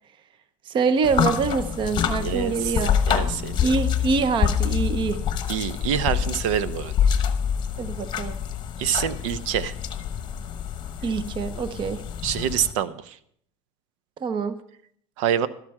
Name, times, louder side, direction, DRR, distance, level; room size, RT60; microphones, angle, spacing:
voice 1, 0.7-3.0 3.6-5.2 7.8-8.4 11.0-12.0 14.2-14.6, right 5 dB, 30° right, 12 dB, 0.8 m, -25 dB
sound 1, 1.0-12.7, left 8 dB, 30° left, 1.0 m, -26 dB
voice 2, 2.2-2.7 3.1-3.6 5.5-6.9 8.8-9.7 12.2-13.2 15.2-15.5, right 9 dB, 85° right, 15 dB, 0.8 m, -26 dB
12.5 x 12.0 x 4.8 m, 0.66 s
supercardioid pair, 140°, 16 cm